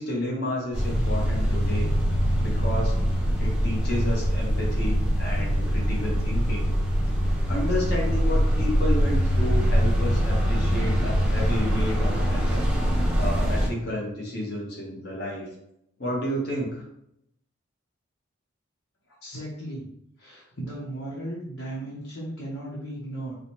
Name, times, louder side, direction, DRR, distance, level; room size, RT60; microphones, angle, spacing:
voice 1, 0.0-1.9 2.4-2.9 3.4-6.7 7.5-12.6 13.2-15.5 16.0-16.8, left 1 dB, 50° left, -3 dB, 1.1 m, -31 dB
sound 1, 0.7-13.7, equal, 5° right, 0.7 m, -23 dB
voice 2, 19.2-19.9 20.2-23.4, right 1 dB, 85° left, -6 dB, 1.0 m, -36 dB
4.8 x 2.3 x 2.9 m, 0.76 s
head